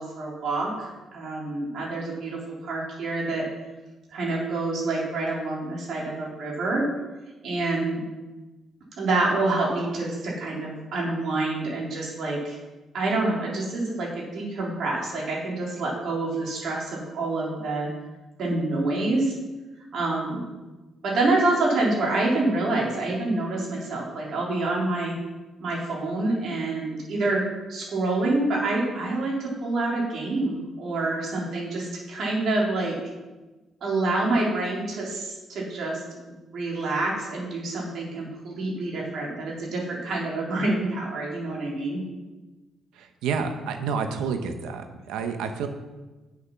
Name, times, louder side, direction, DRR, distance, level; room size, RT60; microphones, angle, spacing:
voice 1, 0.0-3.5 4.1-6.9 7.4-8.0 9.0-12.6 12.9-17.9 18.4-19.3 19.9-20.4 21.0-25.2 25.6-27.4 27.7-33.0 33.8-36.0 36.3-42.0, right 2 dB, 65° right, -3 dB, 3.3 m, -27 dB
voice 2, 43.0-45.7, right 6 dB, 90° right, 7 dB, 0.9 m, -29 dB
7.6 x 6.9 x 5.8 m, 1.2 s
cardioid pair, 90°, 0 cm